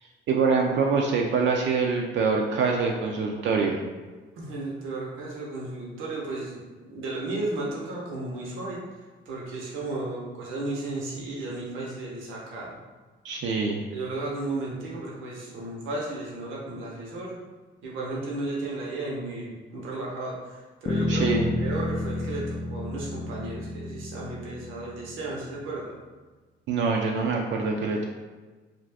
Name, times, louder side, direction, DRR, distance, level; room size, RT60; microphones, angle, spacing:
voice 1, 0.3-3.8 13.2-13.8 21.1-21.5 26.7-28.1, right 4 dB, 65° right, 0 dB, 0.4 m, -25 dB
voice 2, 4.3-8.8 9.3-12.7 13.9-17.4 17.8-21.3 21.6-26.0, right 2 dB, 85° right, -4 dB, 0.8 m, -34 dB
Bass guitar, 20.9-25.3, left 2 dB, 30° left, 0.3 m, -30 dB
2.5 x 2.4 x 3.3 m, 1.3 s
cardioid pair, 90°, 20 cm